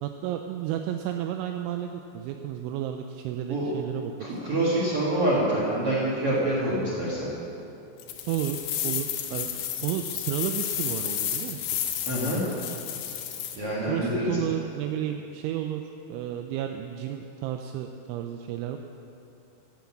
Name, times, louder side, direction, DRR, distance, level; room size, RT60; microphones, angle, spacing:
voice 1, 0.0-4.4 8.3-8.6 8.8-11.7 13.8-15.8 16.1-18.8, right 11 dB, 85° right, 5 dB, 2.7 m, -32 dB
voice 2, 4.2-7.3 12.1-12.4 13.6-14.4, right 1 dB, 60° right, -7 dB, 1.5 m, -26 dB
sound 1, 8.0-13.6, left 10 dB, 75° left, 2.5 m, -32 dB
15.0 x 7.9 x 7.3 m, 2.9 s
omnidirectional pair, 6.0 m